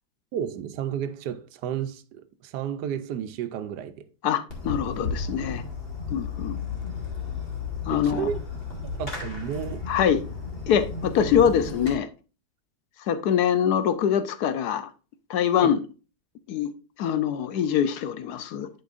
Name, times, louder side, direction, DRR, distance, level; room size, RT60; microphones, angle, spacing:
voice 1, 0.3-3.9 7.9-8.4 8.8-9.9 11.2-11.3 15.6-15.8, right 9 dB, 75° right, 1.2 m, -32 dB
voice 2, 4.2-5.6 6.1-6.6 7.9-8.3 9.9-10.2 10.7-12.1 13.1-14.9 15.3-15.8 16.5-16.7 17.0-18.7, left 8 dB, 75° left, 1.1 m, -24 dB
Fireworks, 4.5-11.9, left 4 dB, 35° left, 2.1 m, -33 dB
10.5 x 5.3 x 2.5 m
omnidirectional pair, 1.8 m